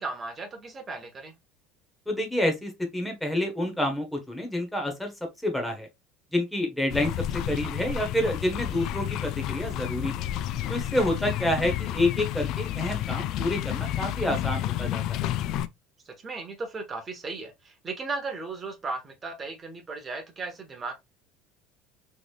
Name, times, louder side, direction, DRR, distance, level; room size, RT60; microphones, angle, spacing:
voice 1, 0.0-1.3 16.0-21.0, right 3 dB, 25° right, 1.1 m, -36 dB
voice 2, 2.1-5.1 5.4-5.9 6.3-7.1 7.5-10.3 10.7-15.3, left 1 dB, 5° left, 1.2 m, -28 dB
sound 1, 6.9-15.7, left 12 dB, 55° left, 0.3 m, -30 dB
3.8 x 3.3 x 2.3 m
supercardioid pair, 130°, 0 cm